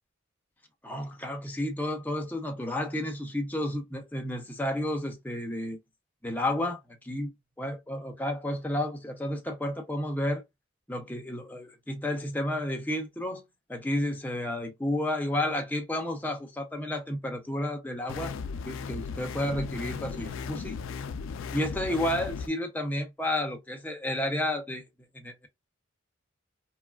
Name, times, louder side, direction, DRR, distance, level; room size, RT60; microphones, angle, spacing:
voice 1, 0.8-5.8 6.2-7.3 7.6-10.4 10.9-13.4 13.7-18.3 18.7-20.8 21.5-24.9 25.1-25.5, left 1 dB, 10° left, 0.6 m, -31 dB
sound 1, 18.1-22.5, left 5 dB, 70° left, 0.3 m, -36 dB
3.0 x 2.3 x 2.3 m
head